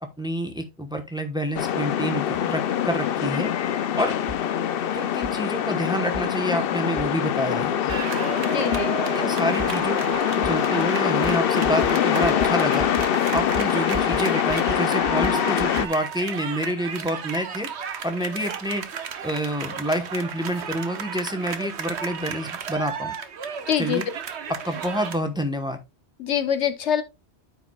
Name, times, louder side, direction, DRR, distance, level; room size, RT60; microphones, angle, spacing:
voice 1, 0.2-3.5 4.0-4.2 4.9-7.8 8.6-8.7 9.1-10.0 10.4-12.9 13.3-17.7 18.0-18.8 19.2-23.1 23.8-24.0 24.6-25.8, equal, 5° right, 1.1 m, -28 dB
sound 1, 1.6-15.9, left 9 dB, 60° left, 0.7 m, -24 dB
sound 2, 4.3-4.4 5.2-5.3 6.1-6.2 7.0-7.1 7.9-8.0 8.7-8.8 9.6-9.7 10.4-10.5 11.2-11.4 11.6-11.9 12.2-12.5 12.8-13.1 13.3-14.2 14.5-15.9, right 1 dB, 40° right, 1.8 m, -35 dB
sound 3, 7.9-25.2, right 7 dB, 75° right, 1.2 m, -34 dB
voice 2, 8.5-8.9 23.7-24.0 26.2-27.0, left 8 dB, 80° left, 1.2 m, -24 dB
13.5 x 4.7 x 2.3 m
omnidirectional pair, 1.1 m